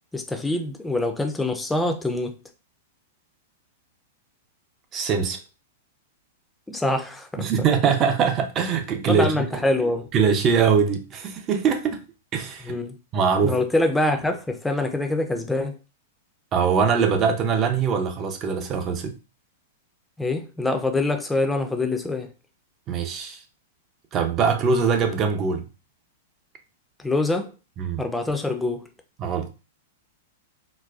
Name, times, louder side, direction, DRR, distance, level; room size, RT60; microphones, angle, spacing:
voice 1, 0.1-2.4 6.7-7.5 9.1-10.1 12.6-13.0 13.4-15.8 20.2-22.3 27.0-27.5 28.0-28.9, left 2 dB, 5° left, 0.5 m, -25 dB
voice 2, 4.9-5.4 7.4-9.4 10.1-12.0 12.3-12.7 13.1-13.6 16.5-19.2 22.9-23.4 24.1-25.7 27.8-28.0 29.2-29.5, right 6 dB, 35° right, 0.6 m, -22 dB
3.9 x 2.2 x 2.4 m
hypercardioid pair, 110°, 0 cm